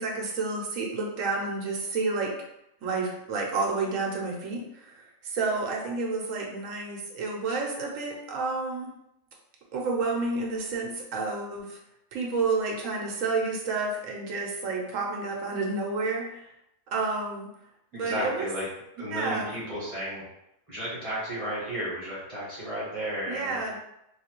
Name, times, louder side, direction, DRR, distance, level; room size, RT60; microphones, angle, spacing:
voice 1, 0.0-2.3 2.8-8.9 9.7-11.8 12.1-16.5 16.9-17.5 17.9-18.5 19.1-19.5 23.3-23.7, right 3 dB, 65° right, -1 dB, 1.1 m, -30 dB
voice 2, 17.9-18.6 19.0-20.2 20.7-23.6, equal, 25° right, -11 dB, 1.4 m, -33 dB
3.2 x 3.1 x 2.9 m, 0.83 s
omnidirectional pair, 1.5 m